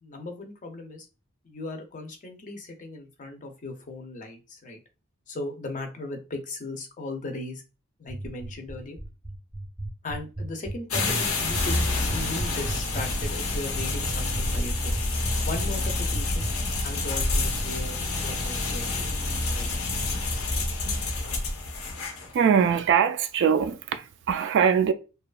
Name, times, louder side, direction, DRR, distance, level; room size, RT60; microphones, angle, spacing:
voice 1, 0.0-1.1 1.4-4.8 5.3-7.6 8.0-9.0 10.0-15.0 15.4-16.5 16.8-19.2 19.5-19.7 20.9-21.0, left 2 dB, 35° left, 0.5 m, -37 dB
sound 1, 8.1-16.5, right 2 dB, 10° right, 0.7 m, -34 dB
sound 2, 10.9-22.3, left 2 dB, 80° left, 0.6 m, -28 dB
voice 2, 22.3-24.9, right 7 dB, 60° right, 0.3 m, -22 dB
2.8 x 2.2 x 2.3 m
head